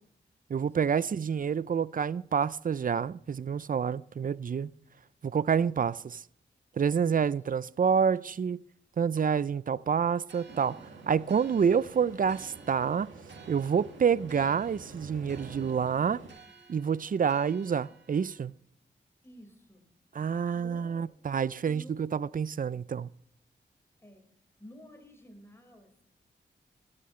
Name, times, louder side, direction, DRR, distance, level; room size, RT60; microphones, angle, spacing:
voice 1, 0.5-4.7 5.2-6.2 6.8-8.6 9.0-13.1 13.5-16.2 16.7-18.5 20.1-23.1, right 7 dB, 45° right, 0.5 m, -28 dB
sound 1, 10.3-18.5, right 5 dB, 65° right, 2.0 m, -56 dB
sound 2, 10.5-16.3, right 4 dB, 85° right, 2.1 m, -48 dB
voice 2, 19.2-19.9 20.5-21.1 21.6-22.0 24.0-24.3 24.6-26.0, equal, 10° left, 4.7 m, -52 dB
15.5 x 13.0 x 3.2 m
cardioid pair, 55°, 19 cm